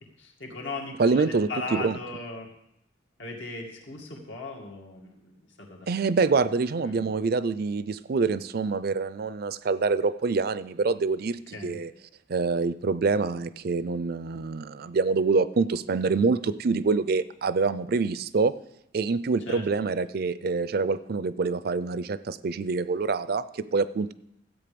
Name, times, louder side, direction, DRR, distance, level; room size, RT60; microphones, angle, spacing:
voice 1, 0.2-2.5 3.2-5.9 6.3-6.5 6.8-7.0 11.5-11.8 19.5-19.6, left 2 dB, 80° left, 0 dB, 2.3 m, -38 dB
voice 2, 1.0-2.0 5.9-11.9 12.3-18.5 18.9-24.1, right 4 dB, 55° right, 16 dB, 0.4 m, -26 dB
13.0 x 8.3 x 5.2 m, 0.79 s
head